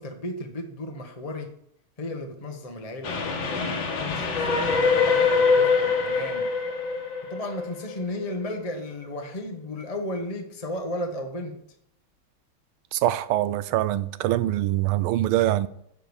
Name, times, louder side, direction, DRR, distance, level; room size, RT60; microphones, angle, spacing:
voice 1, 0.0-1.5 2.0-6.5 7.3-11.6, left 1 dB, 30° left, 0.7 m, -34 dB
Train, 3.0-8.3, left 4 dB, 65° left, 2.1 m, -24 dB
voice 2, 12.9-15.7, right 14 dB, 85° right, 1.5 m, -24 dB
10.0 x 4.8 x 7.1 m
omnidirectional pair, 2.3 m